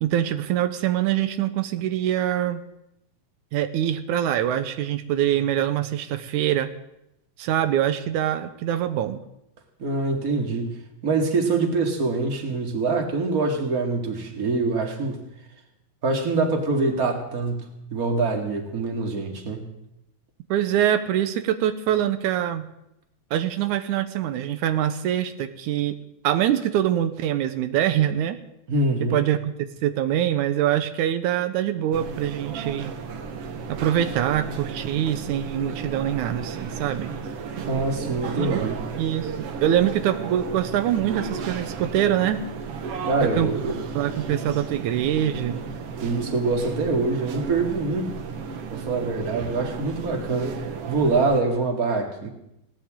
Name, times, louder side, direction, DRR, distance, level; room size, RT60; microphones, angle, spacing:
voice 1, 0.0-2.6 3.5-6.7 7.4-9.2 20.5-22.7 23.3-26.0 26.2-28.4 29.1-29.5 29.8-32.9 33.7-37.1 38.4-38.6 39.0-39.3 39.6-42.5 43.2-43.5 44.0-45.7, right 11 dB, 90° right, 9 dB, 2.3 m, -24 dB
voice 2, 9.8-15.2 16.0-19.7 28.7-29.2 37.7-38.8 43.1-43.8 46.0-48.1 48.7-50.6 50.9-52.3, right 3 dB, 30° right, 2 dB, 2.4 m, -25 dB
sound 1, 31.9-51.4, right 5 dB, 60° right, 2.0 m, -34 dB
21.0 x 17.5 x 3.8 m, 0.83 s
omnidirectional pair, 3.4 m